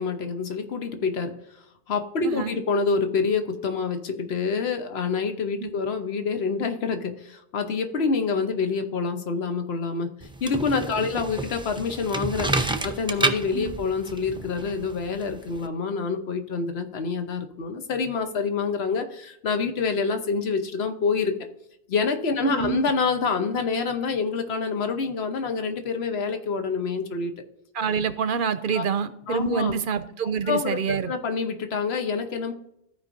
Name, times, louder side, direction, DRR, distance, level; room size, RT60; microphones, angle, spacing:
voice 1, 0.0-1.3 1.9-10.1 10.4-21.3 21.9-27.3 28.7-28.8 29.3-29.7 30.2-32.5, left 5 dB, 80° left, 7 dB, 1.1 m, -27 dB
voice 2, 2.2-2.6 5.6-5.7 13.5-13.7 22.4-22.8 27.7-31.1, right 6 dB, 60° right, 13 dB, 0.7 m, -26 dB
sound 1, 10.2-15.7, right 2 dB, 10° right, 0.3 m, -30 dB
15.0 x 5.0 x 2.6 m, 0.80 s
omnidirectional pair, 1.0 m